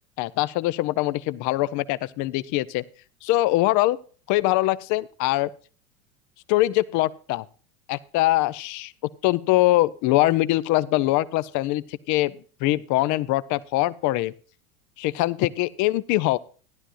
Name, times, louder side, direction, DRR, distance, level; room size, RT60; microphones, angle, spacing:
voice 1, 0.2-2.8 3.2-4.0 4.3-5.5 6.5-7.4 7.9-8.9 9.2-12.4 12.6-14.3 15.0-16.4, left 17 dB, 40° left, 17 dB, 0.7 m, -23 dB
15.5 x 11.0 x 2.5 m, 0.39 s
hypercardioid pair, 85°, 44 cm